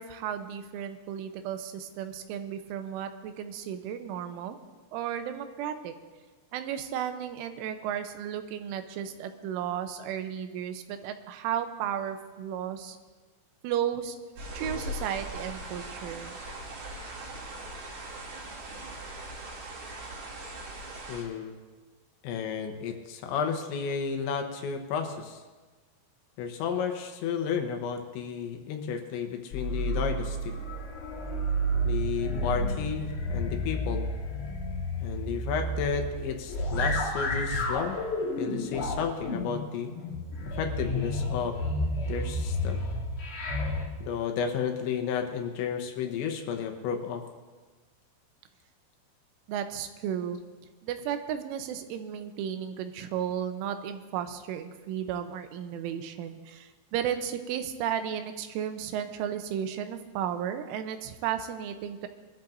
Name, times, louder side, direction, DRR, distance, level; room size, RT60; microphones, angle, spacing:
voice 1, 0.0-4.6 4.9-5.9 6.5-13.0 13.6-14.2 14.5-16.4 49.5-50.4 50.8-62.1, right 9 dB, 90° right, 8 dB, 3.4 m, -34 dB
sound 1, 14.4-21.2, right 1 dB, 70° right, 4.8 m, -40 dB
voice 2, 21.1-21.6 22.2-25.4 26.4-30.5 31.8-34.1 35.0-38.0 38.4-39.9 40.6-41.6 42.1-42.8 44.0-47.2, left 7 dB, 80° left, 4 dB, 3.2 m, -32 dB
sound 2, 29.5-43.8, equal, 65° left, 1.3 m, -31 dB
23.0 x 13.0 x 2.6 m, 1.3 s
omnidirectional pair, 5.5 m